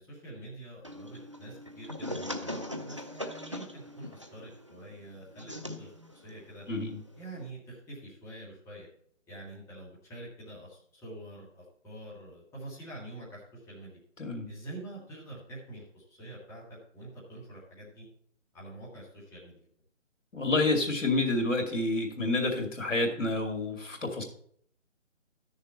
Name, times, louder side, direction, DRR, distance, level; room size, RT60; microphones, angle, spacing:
voice 1, 0.0-6.6 7.2-8.9 9.3-14.0 14.5-18.1 18.5-19.7, right 1 dB, 5° left, -7 dB, 1.8 m, -46 dB
sound 1, 0.8-7.5, left 1 dB, 25° right, 0.4 m, -41 dB
voice 2, 6.7-7.0 14.2-14.5 20.3-24.2, left 2 dB, 75° left, 3 dB, 2.4 m, -29 dB
12.0 x 6.6 x 4.3 m, 0.64 s
figure-of-eight pair, 150°, 38 cm